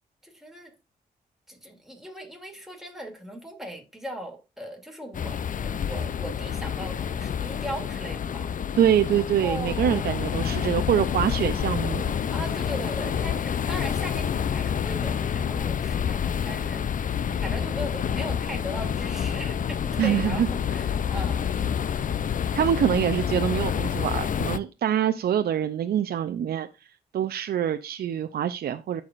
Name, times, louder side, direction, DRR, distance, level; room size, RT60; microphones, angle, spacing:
voice 1, 0.2-0.7 1.5-8.5 9.4-10.1 12.3-17.1 17.4-21.8, equal, ahead, 2.7 m, -38 dB
sound 1, 5.1-24.6, left 8 dB, 55° left, 0.5 m, -28 dB
voice 2, 8.8-12.1 20.0-20.5 22.5-26.7 27.1-29.0, right 10 dB, 75° right, 0.5 m, -25 dB
13.5 x 4.7 x 2.5 m
cardioid pair, 55°, 16 cm